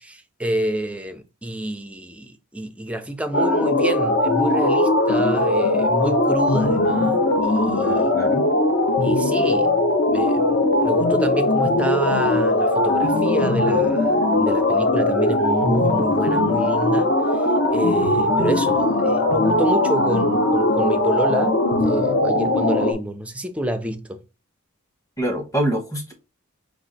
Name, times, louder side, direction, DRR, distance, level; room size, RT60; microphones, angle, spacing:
voice 1, 0.0-8.2 9.0-10.6 10.8-17.4 17.7-24.2, right 1 dB, 5° right, 0.5 m, -28 dB
sound 1, 3.3-22.9, left 2 dB, 55° left, 0.9 m, -19 dB
voice 2, 7.8-8.4 25.2-26.1, right 1 dB, 15° left, 1.1 m, -25 dB
4.7 x 2.4 x 3.9 m
head